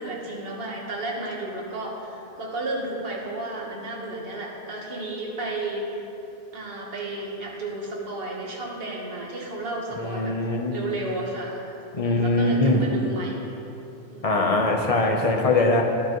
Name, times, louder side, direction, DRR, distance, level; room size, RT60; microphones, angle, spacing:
voice 1, 0.0-6.1 6.5-11.7 12.0-13.5 14.0-14.5 15.0-15.2, right 2 dB, 50° right, -3 dB, 1.5 m, -33 dB
voice 2, 9.9-10.7 11.9-12.8 14.2-15.8, left 2 dB, 35° left, 1 dB, 0.7 m, -22 dB
14.5 x 4.9 x 3.0 m, 3.0 s
omnidirectional pair, 1.3 m